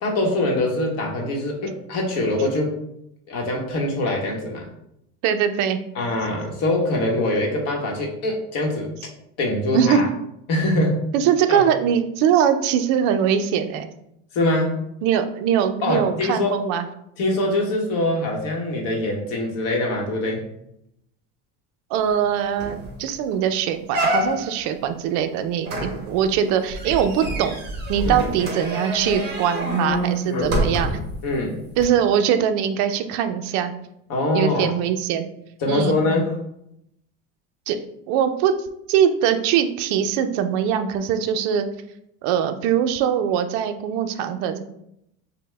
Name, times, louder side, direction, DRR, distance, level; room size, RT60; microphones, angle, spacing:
voice 1, 0.0-2.8 3.3-4.7 5.9-8.9 9.4-10.1 10.5-11.1 11.5-11.6 14.3-14.8 15.8-16.5 17.2-20.5 28.0-28.3 30.3-30.7 31.2-31.7 34.1-34.7 35.6-36.4, left 1 dB, 40° left, 0 dB, 0.9 m, -23 dB
voice 2, 5.2-5.8 9.7-10.0 11.1-13.9 15.0-16.8 21.9-27.6 27.9-30.9 31.8-33.7 34.3-35.3 35.7-36.0 37.7-37.8 38.1-38.5 38.9-41.7 42.2-44.6, right 8 dB, 50° right, 8 dB, 0.4 m, -22 dB
sound 1, 22.2-22.3 22.6-22.9 23.3-23.4 23.9-24.6 25.7-31.1 31.8-31.9, right 1 dB, 25° right, 1.2 m, -27 dB
5.3 x 2.1 x 3.3 m, 0.78 s
cardioid pair, 165°, 37 cm